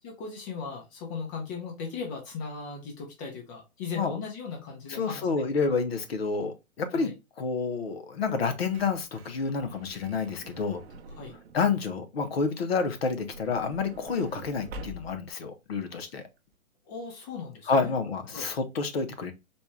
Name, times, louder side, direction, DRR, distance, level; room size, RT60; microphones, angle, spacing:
voice 1, 0.0-5.3 6.9-7.1 11.2-11.3 16.9-17.9 18.3-18.4, left 5 dB, 15° left, 0.6 m, -37 dB
voice 2, 4.9-10.8 11.5-16.2 17.7-19.3, left 4 dB, 45° left, 0.7 m, -29 dB
Truck / Door, 8.7-11.8 12.9-15.4 16.1-16.2 16.4-16.5, right 1 dB, 45° right, 0.7 m, -46 dB
4.3 x 2.3 x 3.1 m
figure-of-eight pair, 125°, 42 cm